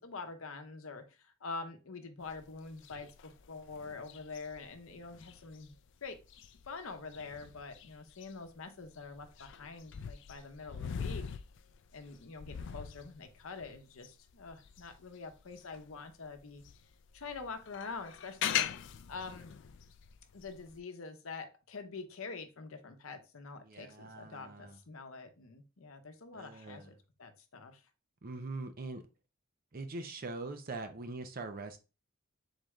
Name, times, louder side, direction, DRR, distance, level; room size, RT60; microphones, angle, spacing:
voice 1, 0.0-5.8 6.0-6.2 6.6-11.4 11.9-16.6 17.1-18.6 19.1-19.5 20.3-27.8, left 4 dB, 75° left, 7 dB, 0.8 m, -45 dB
sound 1, 2.2-15.9 16.3-20.8, left 9 dB, 55° left, 0.3 m, -42 dB
voice 2, 23.6-24.8 26.3-26.9 28.2-29.0 29.7-31.8, right 3 dB, 45° right, 7 dB, 0.6 m, -42 dB
4.0 x 3.2 x 3.5 m, 0.30 s
head